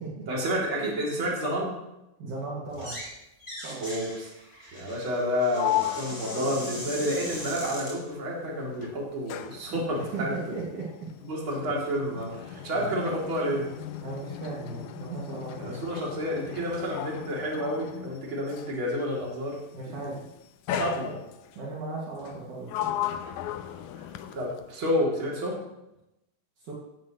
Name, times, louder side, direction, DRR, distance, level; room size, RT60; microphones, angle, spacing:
voice 1, 0.3-1.8 3.8-4.3 4.7-10.3 11.2-13.8 15.6-20.0 20.7-21.2 23.9-24.0 24.3-25.6, equal, 35° right, -3 dB, 3.5 m, -30 dB
voice 2, 2.2-3.0 3.6-4.0 9.7-9.8 10.1-10.9 12.7-13.0 14.0-15.8 19.7-20.2 21.0-21.1 21.5-22.9 26.6-26.7, right 3 dB, 60° right, -5 dB, 3.4 m, -37 dB
sound 1, 2.7-3.1 3.4-8.0, equal, 5° left, 3.9 m, -40 dB
Sliding door, 5.1-8.4 8.7-18.9 19.7-20.1 20.7-21.6 22.2-24.7, left 12 dB, 80° left, 1.8 m, -36 dB
16.0 x 13.0 x 3.2 m, 0.92 s
omnidirectional pair, 4.2 m